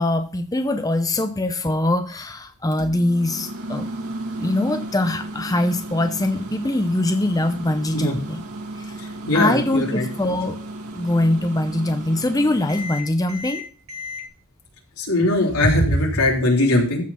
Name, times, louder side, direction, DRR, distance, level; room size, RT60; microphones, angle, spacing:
voice 1, 0.0-3.9 4.4-8.4 8.8-9.0 9.3-10.6 10.9-13.6, left 1 dB, 15° left, 7 dB, 0.7 m, -22 dB
Microwave oven, 2.7-14.2, right 1 dB, 90° right, 2.0 m, -34 dB
voice 2, 9.3-10.1 15.0-17.0, left 1 dB, 85° left, -1 dB, 3.5 m, -19 dB
14.0 x 5.0 x 5.7 m, 0.40 s
head